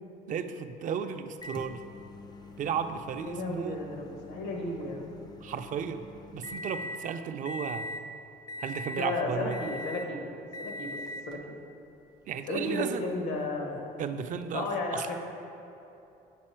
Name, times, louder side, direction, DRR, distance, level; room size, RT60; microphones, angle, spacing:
voice 1, 0.3-1.8 2.6-3.8 5.4-6.0 6.3-7.9 8.6-9.6 12.3-13.1 14.0-15.1, right 7 dB, 50° right, 8 dB, 0.4 m, -34 dB
Microwave oven, 1.4-7.1 7.5-8.1 8.5-9.1 9.5-10.1 10.5-11.4 12.3-12.4 14.4-14.5, left 1 dB, 25° left, 0.3 m, -42 dB
voice 2, 3.2-5.1 9.0-10.2 10.6-11.0 11.2-11.5 12.5-13.9 14.5-15.2, left 2 dB, 85° left, 1 dB, 1.2 m, -33 dB
7.5 x 4.1 x 4.4 m, 2.8 s
cardioid pair, 110°, 17 cm